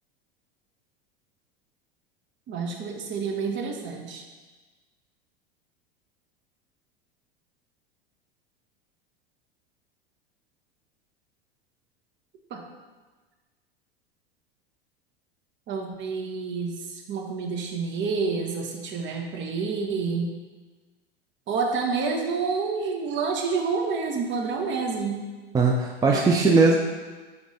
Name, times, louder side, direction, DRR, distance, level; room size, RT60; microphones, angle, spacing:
voice 1, 2.5-4.2 12.5-12.6 15.7-20.3 21.5-25.3 26.1-26.2, right 4 dB, 40° right, 2 dB, 1.4 m, -28 dB
voice 2, 25.5-26.8, right 3 dB, 10° right, 0 dB, 0.6 m, -19 dB
10.5 x 3.6 x 5.1 m, 1.3 s
figure-of-eight pair, 90°, 31 cm